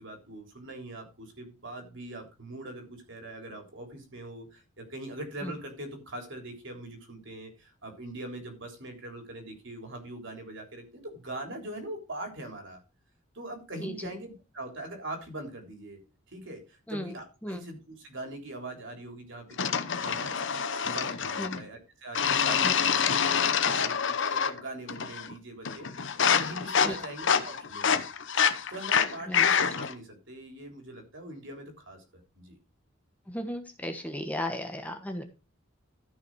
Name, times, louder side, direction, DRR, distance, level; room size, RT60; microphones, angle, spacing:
voice 1, 0.0-12.8 13.3-16.0 16.3-20.4 20.8-25.9 26.2-28.0 28.7-32.6, right 1 dB, 65° right, 4 dB, 3.5 m, -42 dB
voice 2, 13.8-14.2 16.9-17.1 17.4-17.6 21.4-21.6 22.6-22.7 26.8-27.0 29.3-29.5 33.3-35.2, left 1 dB, 10° left, 5 dB, 1.2 m, -35 dB
sound 1, 19.6-21.6 22.2-24.6 24.9-25.3 25.7-29.9, left 7 dB, 65° left, 0.9 m, -26 dB
13.0 x 6.1 x 4.7 m, 0.31 s
head